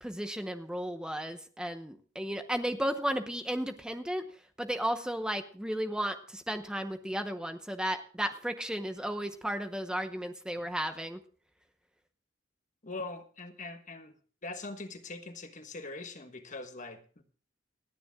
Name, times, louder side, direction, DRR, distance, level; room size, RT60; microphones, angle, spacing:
voice 1, 0.0-4.2 4.6-11.2, equal, 5° right, 0.9 m, -34 dB
voice 2, 12.8-14.1 14.4-17.2, left 3 dB, 40° left, 1.4 m, -42 dB
28.5 x 10.0 x 2.3 m
head